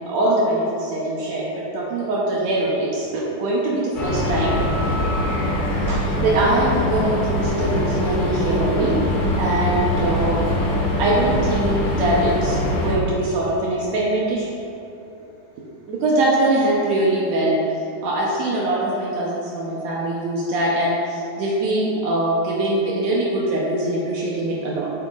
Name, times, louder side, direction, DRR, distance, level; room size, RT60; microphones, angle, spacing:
voice 1, 0.1-4.6 5.8-9.0 9.4-10.4 11.0-14.5 15.9-17.6 18.0-24.9, right 1 dB, 85° right, -4 dB, 1.5 m, -22 dB
sound 1, 3.9-12.9, left 1 dB, 60° left, 2.5 m, -22 dB
10.0 x 7.7 x 2.4 m, 2.8 s
omnidirectional pair, 4.3 m